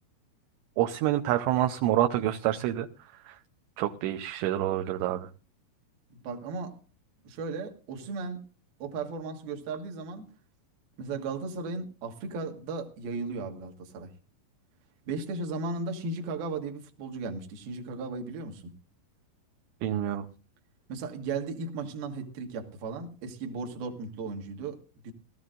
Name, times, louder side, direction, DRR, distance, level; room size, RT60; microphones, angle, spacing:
voice 1, 0.8-2.9 3.3-3.4 3.8-5.3 19.8-20.3, right 13 dB, 80° right, 2.8 m, -27 dB
voice 2, 6.1-6.8 7.2-8.4 8.8-10.3 11.0-14.1 15.1-18.7 20.9-25.1, right 3 dB, 60° right, 2.9 m, -36 dB
19.5 x 14.0 x 2.5 m
omnidirectional pair, 5.7 m